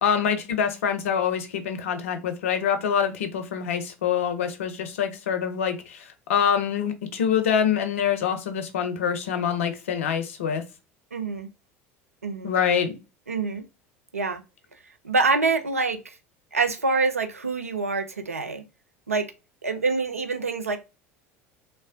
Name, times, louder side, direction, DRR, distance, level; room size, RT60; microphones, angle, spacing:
voice 1, 0.0-10.6 12.4-12.9, left 8 dB, 65° left, 0.5 m, -25 dB
voice 2, 11.1-11.5 12.2-12.6 13.3-13.6 14.1-14.4 15.0-16.2 16.5-18.6 19.1-19.3 19.6-20.8, right 4 dB, 85° right, 0.4 m, -26 dB
3.1 x 2.1 x 2.4 m
figure-of-eight pair, 70°, 8 cm